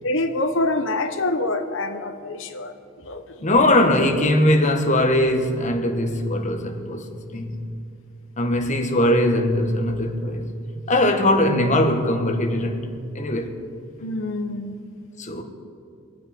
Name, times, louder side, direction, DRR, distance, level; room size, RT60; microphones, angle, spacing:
voice 1, 0.0-2.7 3.0-3.5 14.0-14.8, left 2 dB, 70° left, 1.0 m, -26 dB
voice 2, 3.4-7.6 8.4-10.5 10.9-12.9 13.1-13.6 15.2-15.4, left 1 dB, 35° left, 1.5 m, -20 dB
26.0 x 9.1 x 4.5 m
head